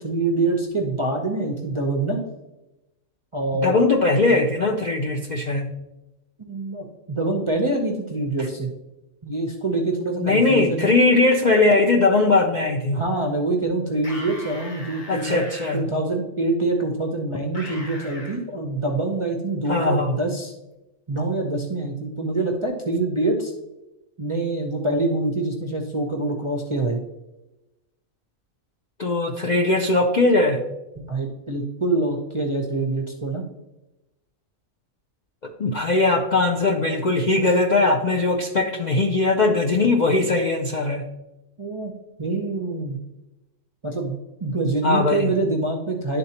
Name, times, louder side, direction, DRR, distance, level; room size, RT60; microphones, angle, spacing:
voice 1, 0.0-2.2 3.3-3.7 6.4-8.7 9.2-10.9 12.9-15.4 15.7-20.5 21.1-23.5 24.2-27.0 31.0-33.5 41.6-41.9 42.2-43.0 43.8-46.2, right 2 dB, 35° right, 1 dB, 0.5 m, -25 dB
voice 2, 3.5-5.7 10.2-13.0 15.1-15.9 19.7-20.2 29.0-30.6 35.4-41.1 44.8-45.4, left 3 dB, 55° left, 0 dB, 0.5 m, -20 dB
sound 1, 14.0-15.8 17.5-18.4, left 1 dB, 40° left, 1.1 m, -38 dB
11.0 x 3.8 x 2.9 m, 0.98 s
omnidirectional pair, 1.4 m